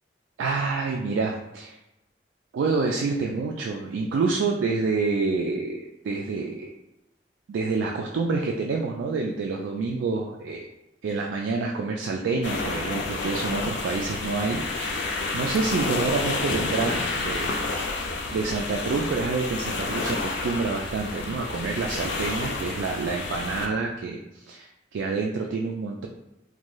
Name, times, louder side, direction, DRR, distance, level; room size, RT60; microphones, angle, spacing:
voice 1, 0.4-1.8 2.5-6.7 7.5-10.6 11.0-14.6 15.3-17.7 18.3-26.1, right 4 dB, 90° right, 0 dB, 0.3 m, -28 dB
sound 1, 12.4-23.7, left 3 dB, 65° left, 0.3 m, -30 dB
2.5 x 2.2 x 3.0 m, 0.93 s
head